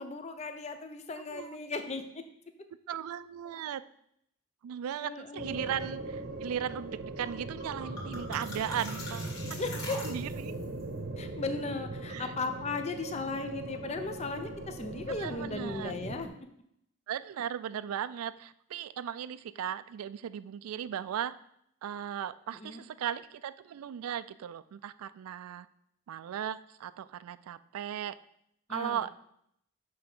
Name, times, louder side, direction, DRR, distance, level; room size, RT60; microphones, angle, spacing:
voice 1, 0.0-2.2 5.0-6.0 9.6-10.2 11.2-16.3 22.5-22.8 28.7-29.1, left 3 dB, 30° left, 7 dB, 0.5 m, -37 dB
voice 2, 2.9-3.8 4.6-9.3 10.0-10.5 12.1-12.3 15.1-15.9 17.1-21.3 21.8-25.7 26.1-28.1 28.7-29.1, right 9 dB, 85° right, 16 dB, 0.3 m, -37 dB
sound 1, 5.4-16.3, right 2 dB, 50° right, 0.8 m, -40 dB
sound 2, 7.2-7.4 7.6-10.6, left 1 dB, 55° left, 2.1 m, -42 dB
6.7 x 3.4 x 5.3 m, 0.73 s
head